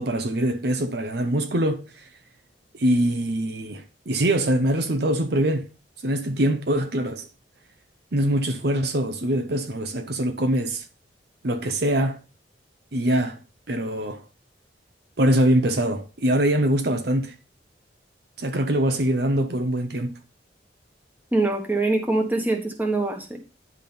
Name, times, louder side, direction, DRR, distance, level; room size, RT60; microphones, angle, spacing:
voice 1, 0.0-2.0 2.7-5.7 6.0-7.3 8.1-10.8 11.4-12.2 12.9-13.4 13.7-14.2 15.2-17.3 18.4-20.2, right 1 dB, 60° right, 0.8 m, -23 dB
voice 2, 21.3-23.4, right 2 dB, 10° right, 1.4 m, -23 dB
10.5 x 3.8 x 5.3 m
head